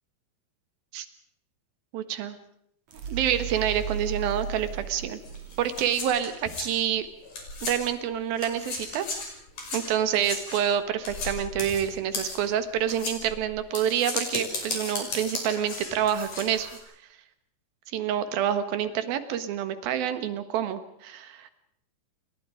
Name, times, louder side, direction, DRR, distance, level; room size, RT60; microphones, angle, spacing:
voice 1, 1.9-2.4 3.1-5.2 5.6-7.1 7.6-9.1 9.7-16.8 17.9-21.5, right 9 dB, 70° right, 11 dB, 3.2 m, -27 dB
sound 1, 2.9-5.9, right 8 dB, 50° right, 3.6 m, -35 dB
sound 2, 5.3-8.0 8.3-16.8, left 3 dB, 55° left, 7.0 m, -35 dB
29.0 x 23.5 x 5.0 m, 0.72 s
omnidirectional pair, 4.5 m